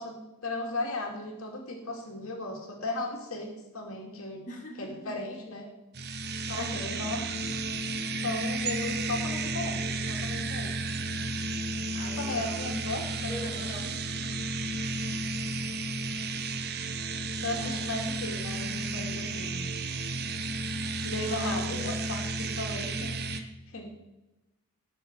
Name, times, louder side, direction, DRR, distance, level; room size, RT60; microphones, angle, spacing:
voice 1, 0.0-4.4 4.8-5.7 6.5-7.2 8.2-10.7 12.1-13.6 17.4-19.6 21.0-23.9, left 2 dB, 70° left, 1 dB, 2.5 m, -36 dB
voice 2, 4.5-5.1 6.5-7.0 11.9-12.9 13.3-14.0 17.6-17.8 21.3-22.0, left 1 dB, 35° left, -2 dB, 2.2 m, -41 dB
sound 1, 5.9-23.4, right 2 dB, 50° right, 0.9 m, -33 dB
18.5 x 6.5 x 4.6 m, 0.96 s
head